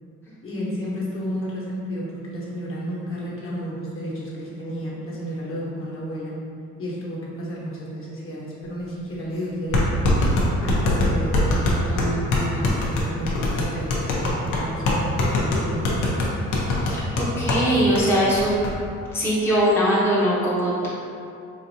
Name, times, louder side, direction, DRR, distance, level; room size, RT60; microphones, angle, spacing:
voice 1, 0.4-6.4 6.8-10.0 10.6-16.2, equal, 45° left, -6 dB, 1.1 m, -32 dB
sound 1, 8.8-8.9 9.7-17.7 18.0-18.1 18.4-18.7, left 2 dB, 85° left, 0.7 m, -22 dB
voice 2, 16.8-18.6 19.1-20.9, equal, 10° left, -8 dB, 0.7 m, -21 dB
4.1 x 2.6 x 2.8 m, 2.5 s
cardioid pair, 90°, 30 cm